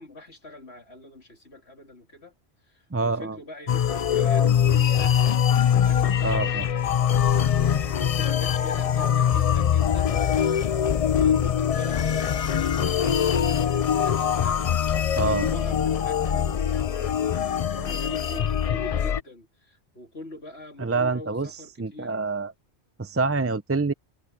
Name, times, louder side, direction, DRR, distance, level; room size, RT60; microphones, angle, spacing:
voice 1, 0.0-2.3 2.7-5.4 5.7-6.7 7.5-22.2, left 2 dB, 70° left, 3.9 m, -43 dB
voice 2, 2.9-3.4 6.2-6.6 15.2-15.5 20.8-21.5 21.8-22.5 23.0-23.9, right 3 dB, 20° right, 0.4 m, -26 dB
sound 1, 3.7-19.2, left 8 dB, 50° left, 0.4 m, -23 dB
omnidirectional pair, 1.1 m